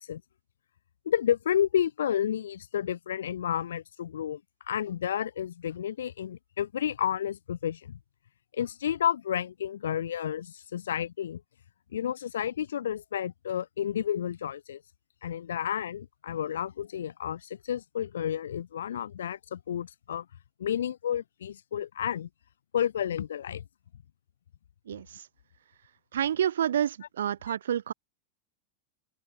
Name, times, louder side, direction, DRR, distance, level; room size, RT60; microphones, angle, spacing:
voice 1, 1.1-4.4 4.7-8.0 8.5-11.4 11.9-14.8 15.2-20.3 20.6-22.3 22.7-23.6 27.5-27.6, left 9 dB, 65° left, 0.3 m, -31 dB
voice 2, 26.1-27.9, right 9 dB, 65° right, 0.6 m, -28 dB
open air
figure-of-eight pair, 90°, 0 cm